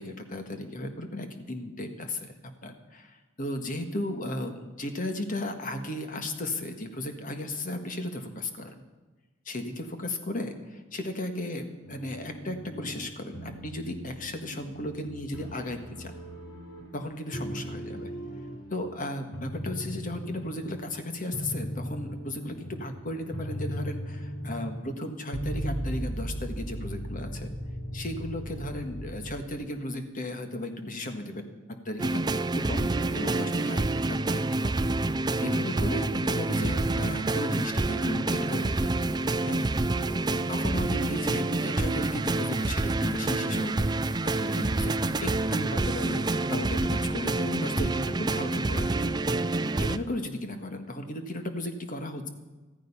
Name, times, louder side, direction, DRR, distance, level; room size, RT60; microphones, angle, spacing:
voice 1, 0.0-8.8 9.4-16.2 16.9-18.1 18.7-27.5 27.9-31.5 31.8-34.8 35.0-39.0 39.4-39.7 40.3-43.9 44.4-49.1 49.8-52.3, left 1 dB, 45° left, 6 dB, 1.6 m, -35 dB
sound 1, 11.8-13.1 13.3-15.1 15.3-17.0 17.3-18.9 19.3-20.9 21.3-29.5, equal, 85° left, 3.8 m, -37 dB
sound 2, 32.0-50.0, right 2 dB, 20° right, 0.4 m, -27 dB
14.5 x 14.5 x 5.6 m, 1.2 s
head